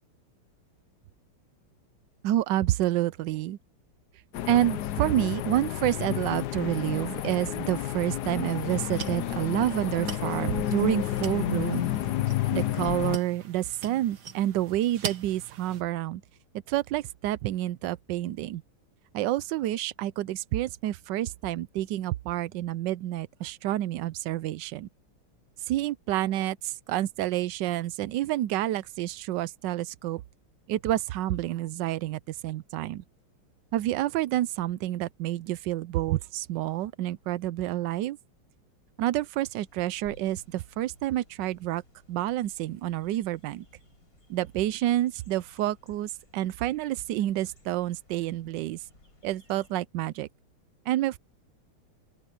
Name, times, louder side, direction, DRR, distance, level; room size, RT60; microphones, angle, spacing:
voice 1, 2.2-3.6 4.5-11.9 12.5-16.2 16.7-18.6 19.1-24.9 25.7-30.2 30.7-33.0 33.7-38.2 39.0-41.8 42.1-43.6 44.3-48.8 49.2-50.3 50.9-51.2, right 14 dB, 75° right, 1.0 m, -29 dB
sound 1, 4.3-13.2, left 12 dB, 65° left, 1.0 m, -30 dB
Coke Bottle Handling Grabbing, 8.4-15.8, right 7 dB, 50° right, 1.9 m, -42 dB
sound 2, 39.6-49.8, left 1 dB, 40° left, 7.2 m, -59 dB
open air
omnidirectional pair, 2.4 m